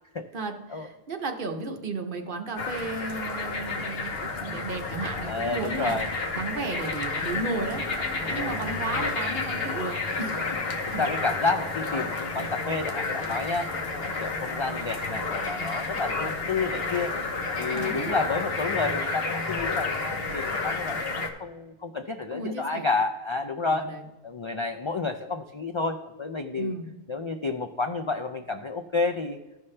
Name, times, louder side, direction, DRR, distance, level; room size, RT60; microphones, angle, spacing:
voice 1, 0.3-7.8 8.3-10.6 10.9-11.1 17.7-18.2 22.3-22.9 23.7-24.0 26.6-26.9, right 3 dB, 55° right, 4 dB, 1.1 m, -34 dB
sound 1, 2.6-21.3, left 3 dB, 70° left, 1.2 m, -31 dB
voice 2, 5.2-6.1 8.2-8.6 11.0-13.7 14.0-17.1 17.6-21.1 21.4-23.9 24.2-26.8 27.1-29.4, left 3 dB, 50° left, 6 dB, 0.3 m, -30 dB
14.5 x 5.6 x 3.2 m, 1.1 s
omnidirectional pair, 1.0 m